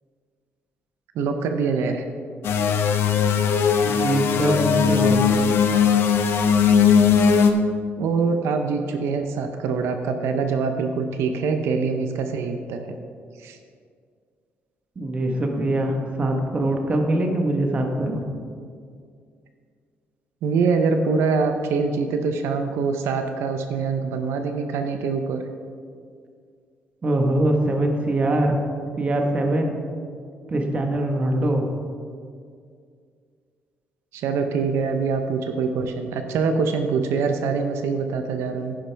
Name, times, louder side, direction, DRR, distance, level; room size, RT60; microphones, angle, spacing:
voice 1, 1.2-2.1 8.0-13.0 13.4-13.6 20.4-25.4 34.1-38.8, right 5 dB, 85° right, 6 dB, 0.7 m, -24 dB
sound 1, 2.4-7.5, left 6 dB, 65° left, 0.8 m, -19 dB
voice 2, 3.8-5.2 15.0-18.2 27.0-28.6 29.0-29.8 30.5-31.7, right 1 dB, 30° right, 3 dB, 1.2 m, -23 dB
10.5 x 10.0 x 3.4 m, 2.2 s
cardioid pair, 145°, 4 cm